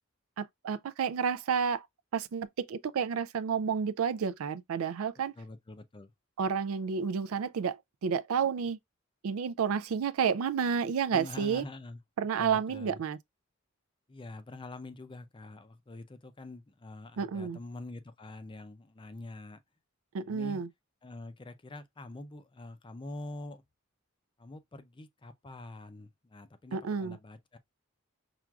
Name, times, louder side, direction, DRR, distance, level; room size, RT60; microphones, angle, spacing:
voice 1, 0.4-1.9 2.1-5.3 6.4-8.8 9.2-11.6 12.2-13.2 17.2-17.6 20.1-20.7 26.7-27.2, right 6 dB, 80° right, 0.4 m, -30 dB
voice 2, 5.4-6.1 11.1-12.0 12.4-13.0 14.1-19.6 20.2-20.6 21.0-23.6 24.4-27.6, left 2 dB, 25° left, 0.5 m, -45 dB
5.9 x 2.5 x 2.3 m
head